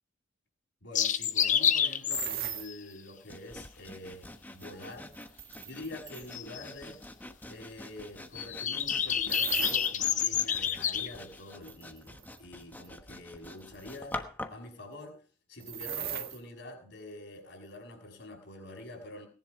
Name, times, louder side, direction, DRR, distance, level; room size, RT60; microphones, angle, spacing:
voice 1, 0.8-5.2 5.6-7.0 7.5-14.2 14.5-15.2 15.5-19.3, left 1 dB, 65° left, 1 dB, 6.1 m, -46 dB
sound 1, 1.0-2.7 6.3-6.7 8.4-11.1, left 9 dB, 40° left, 0.8 m, -28 dB
sound 2, 2.1-2.7 4.6-6.3 9.3-9.9 11.7-12.4 12.8-12.9 13.7-14.0 15.6-16.4, right 11 dB, 50° right, 1.6 m, -37 dB
Sawing, 3.3-14.7, left 1 dB, 10° left, 1.1 m, -46 dB
19.0 x 10.5 x 4.8 m, 0.39 s
head